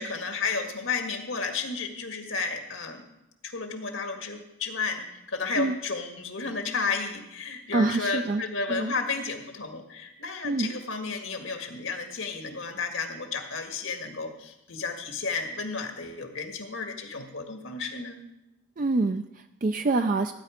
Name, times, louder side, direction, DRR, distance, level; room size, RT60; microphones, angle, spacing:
voice 1, 0.0-3.1 3.4-18.2, left 4 dB, 80° left, 4 dB, 1.8 m, -32 dB
voice 2, 7.7-8.4 8.7-8.9 10.4-10.7 18.8-20.3, right 3 dB, 40° right, 8 dB, 0.4 m, -26 dB
16.0 x 9.5 x 5.1 m, 0.91 s
head